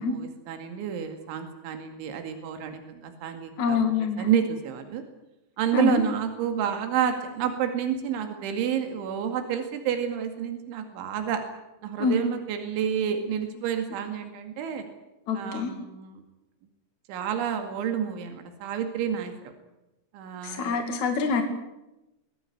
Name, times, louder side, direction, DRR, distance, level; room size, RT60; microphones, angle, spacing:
voice 1, 0.0-5.0 5.6-11.4 11.8-14.8 15.3-16.2 17.1-19.3 20.1-20.8, right 8 dB, 85° right, 6 dB, 4.6 m, -29 dB
voice 2, 3.6-4.3 5.7-6.0 12.0-12.2 15.3-15.7 20.4-21.4, left 5 dB, 45° left, 5 dB, 3.2 m, -25 dB
22.5 x 18.0 x 9.7 m, 0.95 s
omnidirectional pair, 5.3 m